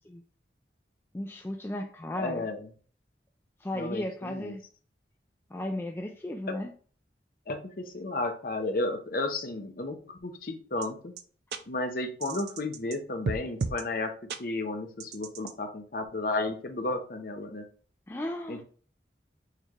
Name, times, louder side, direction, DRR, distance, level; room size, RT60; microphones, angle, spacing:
voice 1, 1.1-2.5 3.6-4.6 5.5-6.7 18.1-18.6, left 1 dB, 15° left, 3 dB, 0.3 m, -35 dB
voice 2, 2.1-2.7 3.7-4.5 6.5-6.6 7.5-11.1 11.7-14.1 14.4-17.7 18.5-18.6, left 2 dB, 50° left, 6 dB, 0.7 m, -33 dB
sound 1, 10.8-10.9 11.2-11.3 11.5-11.6 12.2-13.0 13.3-13.8 14.3-14.4 15.0-15.5, right 4 dB, 65° right, 0.4 m, -33 dB
6.5 x 3.2 x 2.4 m, 0.42 s
head